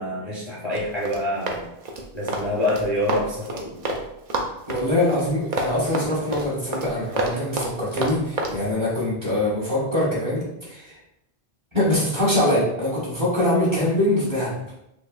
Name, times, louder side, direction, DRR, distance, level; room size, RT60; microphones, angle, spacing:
voice 1, 0.0-1.7 2.1-4.0 7.3-7.4, left 1 dB, 30° left, -7 dB, 0.6 m, -27 dB
Run, 0.7-4.0 4.3-8.6, right 2 dB, 50° right, 0.5 m, -28 dB
voice 2, 4.7-11.0 11.7-14.6, left 1 dB, 30° right, -8 dB, 1.4 m, -23 dB
4.2 x 2.6 x 2.5 m, 0.83 s
omnidirectional pair, 1.1 m